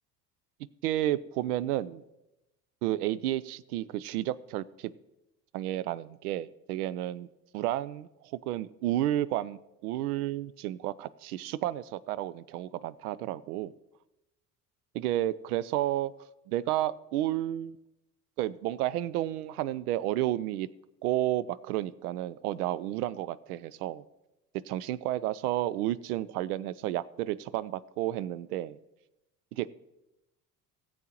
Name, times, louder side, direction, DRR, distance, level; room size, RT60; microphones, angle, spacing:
voice 1, 0.8-2.0 2.8-4.9 5.5-7.3 7.5-13.7 14.9-16.1 16.5-17.8 18.4-20.7 21.0-24.0 24.7-28.8 29.5-29.7, right 14 dB, 70° right, 19 dB, 0.6 m, -31 dB
18.0 x 7.9 x 2.9 m, 0.95 s
figure-of-eight pair, 60°, 48 cm